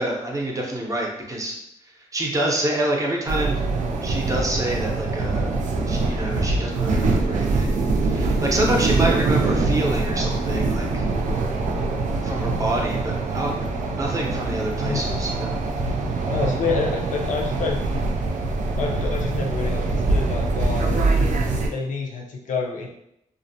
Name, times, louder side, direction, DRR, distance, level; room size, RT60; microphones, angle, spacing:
voice 1, 0.0-1.6 2.1-3.6 4.0-5.5 5.9-7.7 8.0-11.1 12.2-15.5, right 1 dB, 25° right, -1 dB, 0.6 m, -27 dB
sound 1, 3.3-21.7, right 3 dB, 70° right, 0.4 m, -23 dB
voice 2, 16.3-17.8 18.8-21.0 21.7-22.9, left 4 dB, 75° left, 0 dB, 0.5 m, -28 dB
2.4 x 2.0 x 2.6 m, 0.79 s
wide cardioid pair, 100°, 13 cm